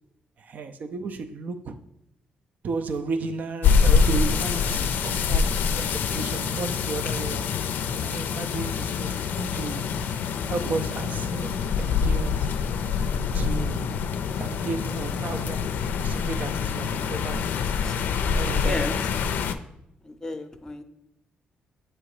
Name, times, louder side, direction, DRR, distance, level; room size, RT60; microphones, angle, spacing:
voice 1, 0.4-1.8 2.6-7.5 8.0-9.9 10.5-12.6 13.3-14.0 14.4-17.6 18.2-18.8, right 4 dB, 60° right, 0.5 m, -34 dB
sound 1, 3.6-19.5, left 6 dB, 75° left, 0.4 m, -25 dB
voice 2, 18.6-18.9 20.0-20.8, left 2 dB, 20° left, 0.6 m, -33 dB
7.3 x 3.0 x 4.8 m
cardioid pair, 90°, 3 cm